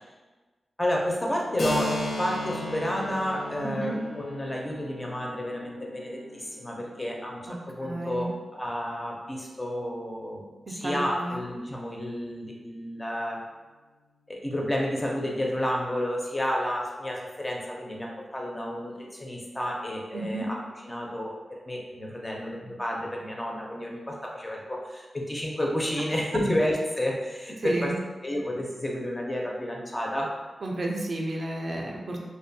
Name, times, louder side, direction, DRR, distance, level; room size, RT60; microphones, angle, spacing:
voice 1, 0.8-13.4 14.3-27.9 28.2-30.3, equal, 20° left, -2 dB, 0.4 m, -31 dB
Keyboard (musical), 1.6-9.0, left 1 dB, 75° left, 0.7 m, -37 dB
voice 2, 3.6-4.0 7.5-7.6 7.8-8.3 10.7-11.4 20.1-20.5 27.6-28.0 30.6-32.2, right 2 dB, 50° right, 0 dB, 0.3 m, -32 dB
2.5 x 2.1 x 2.6 m, 1.3 s
wide cardioid pair, 115°, 0 cm